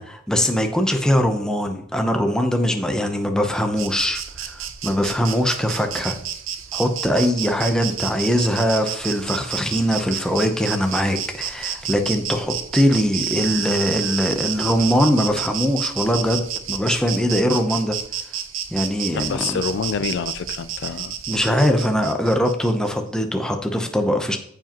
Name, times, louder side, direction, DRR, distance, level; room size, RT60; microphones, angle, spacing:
voice 1, 0.0-6.2 6.7-18.0 18.7-19.6 21.3-24.4, equal, 5° left, 4 dB, 0.8 m, -21 dB
Insect, 3.8-22.9, right 9 dB, 65° right, 0.8 m, -30 dB
voice 2, 19.1-21.1, left 5 dB, 55° left, 13 dB, 0.4 m, -27 dB
14.5 x 4.9 x 3.0 m, 0.66 s
head